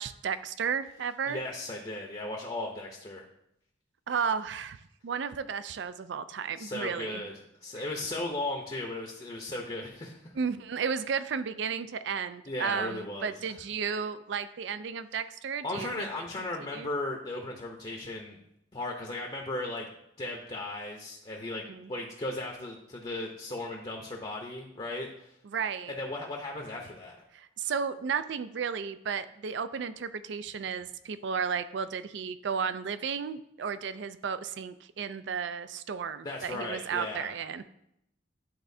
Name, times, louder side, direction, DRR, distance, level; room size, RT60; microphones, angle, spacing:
voice 1, 0.0-1.4 4.1-4.8 5.0-7.2 7.8-7.9 10.4-16.1 16.7-16.9 21.6-21.9 25.4-25.9 27.3-37.7, right 6 dB, 65° right, 13 dB, 0.4 m, -33 dB
voice 2, 1.3-3.2 6.6-10.2 12.5-13.6 15.6-18.4 18.7-19.9 20.2-25.3 25.9-27.2 36.2-37.3, left 2 dB, 25° left, 0 dB, 0.7 m, -36 dB
10.5 x 4.3 x 2.7 m, 0.78 s
head